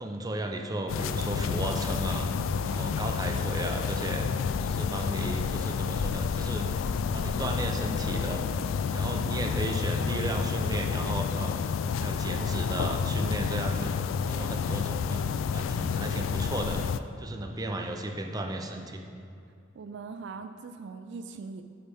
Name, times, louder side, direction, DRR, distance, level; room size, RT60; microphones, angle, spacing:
voice 1, 0.0-2.3 2.6-4.3 4.6-6.7 7.1-8.5 8.9-11.6 12.0-13.9 14.3-15.2 15.5-16.8 17.2-19.0, right 1 dB, 20° right, 3 dB, 0.6 m, -34 dB
sound 1, 0.9-17.0, left 6 dB, 85° left, 0.3 m, -30 dB
voice 2, 2.5-3.0 19.7-21.6, right 4 dB, 65° right, 8 dB, 0.4 m, -41 dB
8.7 x 8.3 x 3.6 m, 2.4 s
head